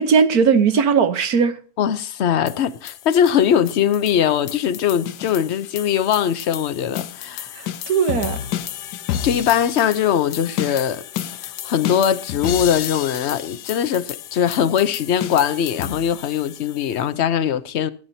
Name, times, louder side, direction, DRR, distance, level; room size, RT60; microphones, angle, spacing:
voice 1, 0.0-1.6 7.6-8.4, right 6 dB, 65° right, 1.5 m, -18 dB
voice 2, 1.8-7.5 9.2-11.0 11.4-17.9, left 9 dB, 55° left, 0.8 m, -21 dB
sound 1, 2.5-17.0, left 11 dB, 80° left, 1.3 m, -31 dB
16.5 x 10.5 x 2.7 m
omnidirectional pair, 1.7 m